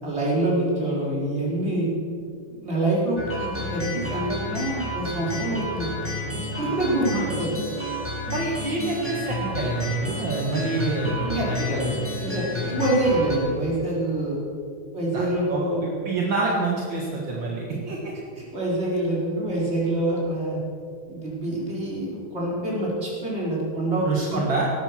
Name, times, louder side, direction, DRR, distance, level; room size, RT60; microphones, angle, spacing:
voice 1, 0.0-1.9 2.6-6.0 6.6-7.6 11.2-14.4 14.9-15.8 17.7-17.8 18.4-20.6 21.1-24.4, right 1 dB, 30° right, -5 dB, 4.8 m, -26 dB
sound 1, 3.2-13.4, left 1 dB, 5° left, 3.4 m, -31 dB
voice 2, 8.3-11.9 15.1-18.0 24.0-24.7, right 3 dB, 65° right, -2 dB, 2.4 m, -27 dB
17.5 x 13.5 x 6.0 m, 2.4 s
omnidirectional pair, 2.2 m